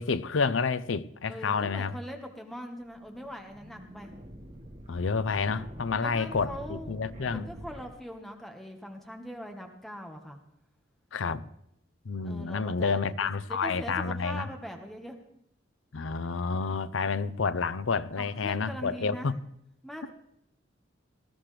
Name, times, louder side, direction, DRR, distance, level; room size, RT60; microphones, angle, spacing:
voice 1, 0.0-1.9 4.9-7.5 11.1-11.5 12.1-14.5 15.9-19.4, left 5 dB, 85° left, 0.6 m, -29 dB
voice 2, 1.3-4.2 5.9-7.0 7.3-10.4 12.2-15.2 18.2-19.3 19.8-20.1, equal, ahead, 1.3 m, -42 dB
sound 1, 2.8-7.9, equal, 35° right, 1.5 m, -45 dB
19.0 x 13.5 x 3.3 m
head